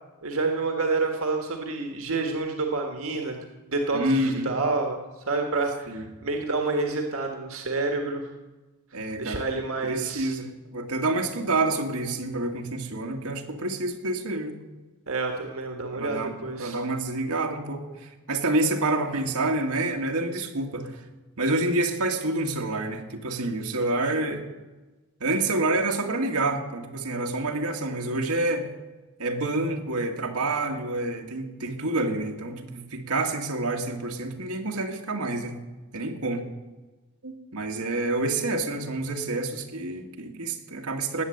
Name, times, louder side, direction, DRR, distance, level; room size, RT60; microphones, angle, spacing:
voice 1, 0.2-5.0 5.3-8.2 9.2-10.3 15.1-16.8, right 3 dB, 65° right, 3 dB, 1.7 m, -28 dB
voice 2, 3.9-4.5 5.9-6.1 8.9-9.4 9.8-14.6 15.9-16.3 16.6-21.0 21.4-24.4 25.2-28.7 29.2-35.6 35.9-36.4 37.2-41.2, right 2 dB, 85° right, 2 dB, 2.0 m, -28 dB
19.5 x 8.5 x 8.0 m, 1.2 s
head